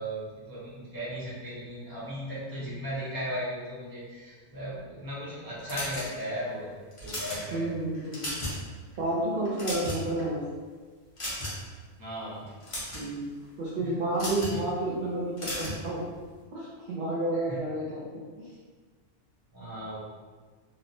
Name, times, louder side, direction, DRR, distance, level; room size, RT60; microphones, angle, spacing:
voice 1, 0.0-6.7 7.0-7.7 12.0-12.5 13.8-14.0 14.5-14.8 17.3-17.7 19.5-20.0, equal, 20° right, -9 dB, 0.7 m, -36 dB
sound 1, 5.7-6.4 6.9-7.4 7.9-8.6 8.9-9.1 9.5-10.2 11.2-11.7 12.5-13.0 14.1-14.6 15.4-15.8, left 1 dB, 30° left, 0.7 m, -35 dB
voice 2, 7.5-8.3 9.0-10.4 12.9-13.3 13.6-16.0 16.5-18.0 18.4-18.5, right 1 dB, 60° right, -6 dB, 0.6 m, -30 dB
2.9 x 2.0 x 2.6 m, 1.4 s
omnidirectional pair, 1.2 m